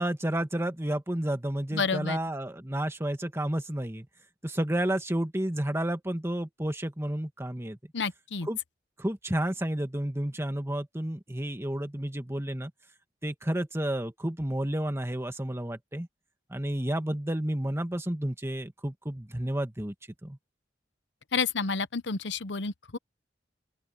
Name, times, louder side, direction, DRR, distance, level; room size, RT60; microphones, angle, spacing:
voice 1, 0.0-4.1 4.4-7.8 8.4-8.6 9.0-12.7 13.2-16.1 16.5-19.9 20.2-20.4, right 1 dB, 15° right, 2.0 m, -31 dB
voice 2, 1.7-2.2 7.9-8.5 21.3-23.0, left 5 dB, 90° left, 0.9 m, -30 dB
open air
head